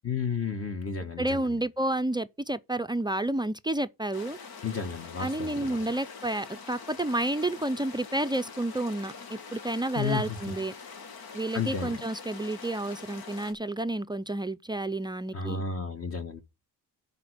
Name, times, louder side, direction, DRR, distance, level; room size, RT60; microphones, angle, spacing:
voice 1, 0.0-1.5 4.6-5.8 10.0-10.5 11.5-11.9 15.3-16.4, left 5 dB, 40° left, 1.4 m, -32 dB
voice 2, 1.2-4.4 5.2-10.7 11.3-15.6, right 1 dB, 10° right, 0.5 m, -30 dB
sound 1, 4.1-13.5, left 5 dB, 75° left, 2.2 m, -44 dB
11.0 x 4.3 x 6.4 m
cardioid pair, 100°, 37 cm